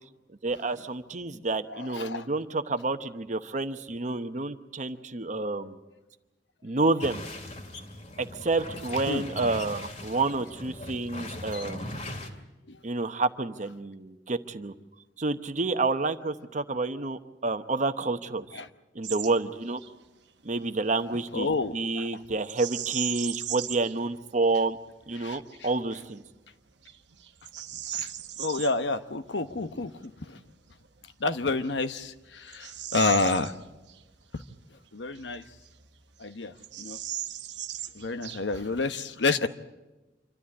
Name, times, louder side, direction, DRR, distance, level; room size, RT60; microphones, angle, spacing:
voice 1, 0.4-5.8 6.6-7.2 8.2-11.9 12.8-14.7 15.2-18.5 18.9-19.8 20.4-21.5 21.7-24.8 25.1-26.2, right 3 dB, 45° right, 10 dB, 0.9 m, -29 dB
voice 2, 1.7-2.3 9.1-9.2 12.7-12.8 18.5-18.7 21.3-22.1 25.2-25.4 27.9-28.1 28.4-30.4 31.2-33.6 34.3-34.4 34.9-35.4 36.2-37.0 37.9-39.5, left 3 dB, 80° left, 10 dB, 1.0 m, -29 dB
sound 1, 7.0-12.3, left 1 dB, 40° left, 2.5 m, -39 dB
Bird vocalization bird call bird song, 19.0-19.3 19.6-19.9 22.4-23.9 24.5-24.6 25.2-25.6 26.2-26.3 26.8-28.7 30.8-30.9 31.6-34.0 34.4-34.5 35.2-36.0 36.2-36.3 36.6-38.7, right 11 dB, 75° right, 1.1 m, -37 dB
26.5 x 13.0 x 9.7 m, 1.1 s
head